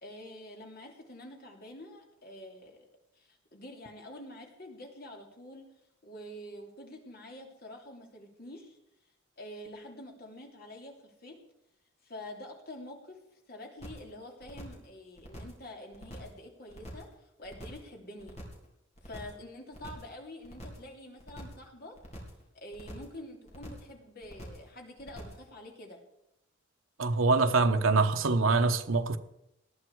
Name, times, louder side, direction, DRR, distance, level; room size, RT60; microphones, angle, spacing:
voice 1, 0.0-2.9 3.1-5.7 6.0-8.8 9.4-11.4 12.0-13.2 13.5-18.4 19.0-22.0 22.5-26.0, left 1 dB, 50° left, 3.0 m, -47 dB
sound 1, 13.8-14.1 14.4-14.9 15.2-15.6 15.9-16.4 16.7-17.1 17.4-17.9 18.2-18.7 19.0-19.4 19.7-20.1 20.4-20.9 21.2-21.7 22.0-22.4 22.7-23.2 23.5-23.9 24.2-24.7 25.0-25.5, equal, 35° left, 3.9 m, -46 dB
voice 2, 27.0-29.2, right 3 dB, 80° right, 1.0 m, -24 dB
19.5 x 12.5 x 4.7 m
head